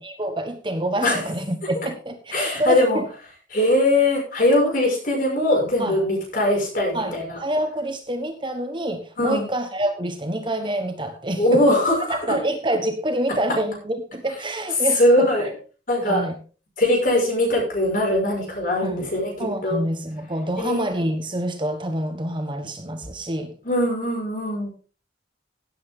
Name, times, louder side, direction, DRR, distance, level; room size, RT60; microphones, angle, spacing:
voice 1, 0.0-3.1 4.6-4.8 5.8-6.0 6.9-15.5 16.0-16.3 18.8-19.1 19.4-23.5, right 1 dB, 25° right, 6 dB, 1.3 m, -27 dB
voice 2, 2.3-3.0 3.5-7.4 9.2-9.4 11.4-12.1 15.0-15.4 15.9-16.3 16.8-19.8 20.6-20.9 23.6-24.7, left 1 dB, 45° left, -1 dB, 6.1 m, -21 dB
16.5 x 8.6 x 3.7 m, 0.37 s
head